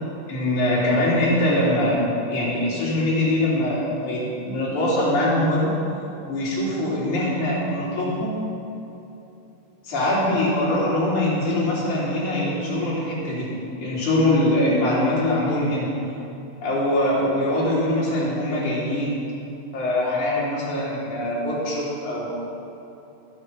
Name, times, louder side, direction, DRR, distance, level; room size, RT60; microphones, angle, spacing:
voice 1, 0.3-5.7 6.2-8.3 9.8-13.5 13.8-15.9 16.6-19.1 19.7-22.3, left 1 dB, 40° left, -7 dB, 4.8 m, -23 dB
21.0 x 9.5 x 5.9 m, 2.9 s
omnidirectional pair, 5.9 m